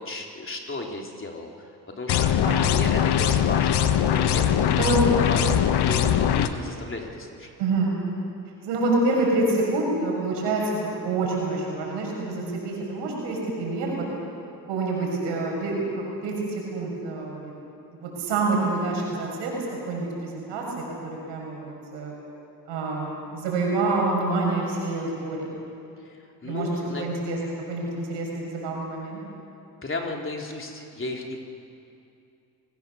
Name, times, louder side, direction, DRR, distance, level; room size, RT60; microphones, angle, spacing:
voice 1, 0.0-1.7 2.0-2.3 2.6-7.5 26.0-27.1 29.8-31.4, left 2 dB, 30° left, 1 dB, 3.8 m, -34 dB
sound 1, 2.1-6.5, left 9 dB, 65° left, 1.4 m, -21 dB
voice 2, 7.6-8.0 8.6-14.0 14.7-16.3 16.7-17.5 18.0-20.6 21.0-22.1 22.7-25.6 26.4-27.4 27.7-29.2, right 3 dB, 85° right, -1 dB, 6.7 m, -27 dB
28.5 x 17.5 x 7.2 m, 2.6 s
supercardioid pair, 60°, 42 cm